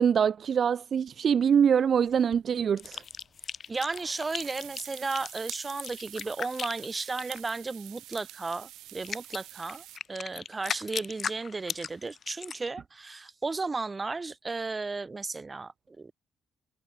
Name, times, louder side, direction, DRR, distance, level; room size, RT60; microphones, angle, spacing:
voice 1, 0.0-3.0, right 7 dB, 55° right, 0.4 m, -24 dB
sound 1, 1.9-2.7 3.7-10.0, right 15 dB, 90° right, 0.8 m, -47 dB
sound 2, 2.8-7.4 8.5-8.6 9.0-12.7, left 7 dB, 50° left, 1.0 m, -37 dB
voice 2, 3.7-16.1, right 3 dB, 25° right, 1.9 m, -34 dB
cardioid pair, 90°, 0 cm